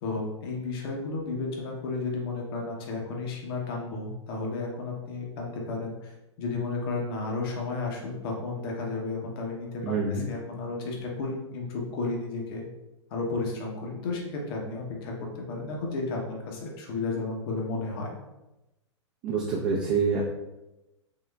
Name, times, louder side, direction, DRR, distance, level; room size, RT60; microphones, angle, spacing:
voice 1, 0.0-12.7 13.1-18.1, left 3 dB, 50° left, -1 dB, 0.8 m, -33 dB
voice 2, 9.8-10.3 19.2-20.2, right 5 dB, 40° right, -3 dB, 0.6 m, -26 dB
3.7 x 2.8 x 2.2 m, 0.98 s
hypercardioid pair, 115°, 15 cm